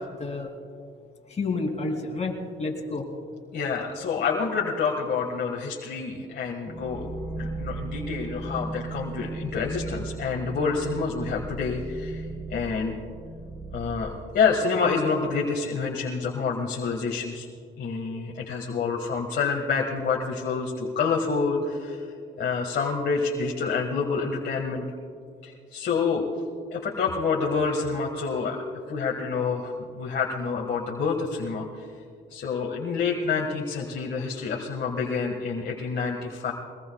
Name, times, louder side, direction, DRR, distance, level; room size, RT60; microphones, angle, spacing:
voice 1, 1.3-3.1, left 3 dB, 35° left, 2 dB, 2.9 m, -30 dB
voice 2, 3.5-7.1 7.4-13.0 13.7-17.5 17.8-22.1 22.4-24.9 25.4-26.2 26.7-28.6 28.9-31.9 32.3-36.5, left 5 dB, 55° left, -1 dB, 1.7 m, -28 dB
sound 1, 6.7-14.0, right 2 dB, 5° left, 3.7 m, -36 dB
23.5 x 19.5 x 2.3 m, 2.3 s
cardioid pair, 90°, 20 cm